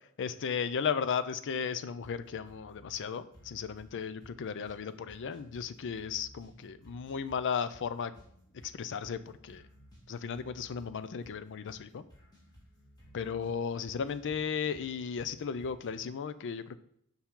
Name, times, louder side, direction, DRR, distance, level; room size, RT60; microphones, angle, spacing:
voice 1, 0.2-8.1 8.6-9.6 10.1-12.0 13.1-16.8, left 6 dB, 55° left, 13 dB, 0.4 m, -35 dB
sound 1, 2.0-16.0, equal, 20° left, 1.9 m, -58 dB
7.0 x 5.6 x 3.7 m, 0.71 s
head